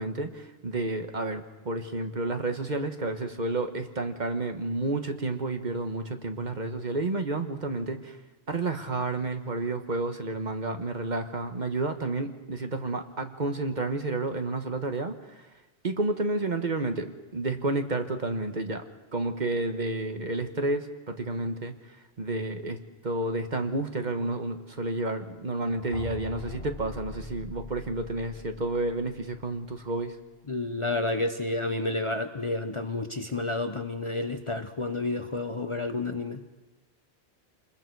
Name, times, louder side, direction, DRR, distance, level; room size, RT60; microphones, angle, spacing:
voice 1, 0.0-8.2 8.5-15.4 15.8-18.8 19.1-21.7 22.2-22.8 23.0-30.2, right 2 dB, 45° right, 6 dB, 1.3 m, -30 dB
sound 1, 25.6-29.6, left 2 dB, 70° left, 2.5 m, -43 dB
voice 2, 30.5-36.5, left 2 dB, 30° left, 7 dB, 0.8 m, -30 dB
28.0 x 21.0 x 4.7 m, 1.1 s
omnidirectional pair, 1.1 m